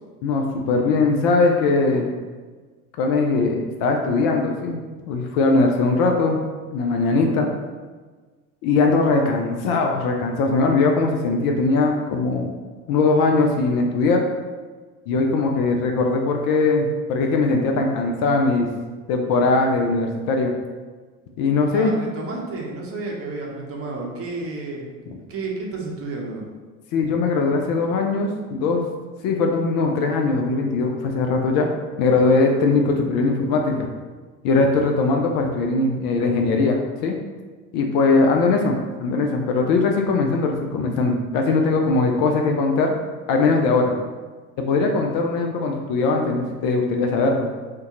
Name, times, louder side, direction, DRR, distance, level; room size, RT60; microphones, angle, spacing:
voice 1, 0.2-2.1 3.0-6.4 6.7-7.5 8.6-12.5 12.9-14.2 15.1-18.7 19.1-20.5 21.4-22.0 26.9-28.8 29.2-31.7 32.0-33.9 34.4-37.2 37.7-42.9 43.3-43.9 44.6-47.5, left 3 dB, 50° left, 2 dB, 0.5 m, -20 dB
voice 2, 21.6-24.9 25.3-26.4, right 3 dB, 30° right, -1 dB, 0.7 m, -31 dB
2.7 x 2.2 x 3.7 m, 1.4 s
hypercardioid pair, 75°, 45 cm